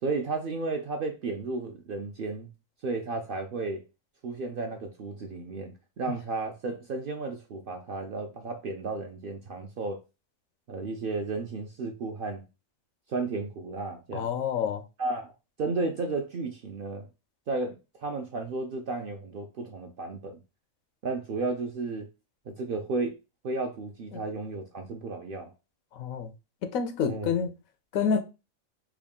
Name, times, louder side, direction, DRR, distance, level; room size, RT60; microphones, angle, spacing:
voice 1, 0.0-2.5 2.8-3.8 4.2-10.0 10.7-12.4 13.1-14.3 15.0-15.3 15.6-17.1 17.5-20.4 21.0-22.1 22.5-23.2 23.4-25.5 27.1-27.3, right 3 dB, 60° right, 0.6 m, -33 dB
voice 2, 14.1-14.8 26.0-26.3 26.6-27.5 27.9-28.2, left 6 dB, 90° left, 1.0 m, -28 dB
3.5 x 2.2 x 3.5 m
omnidirectional pair, 1.4 m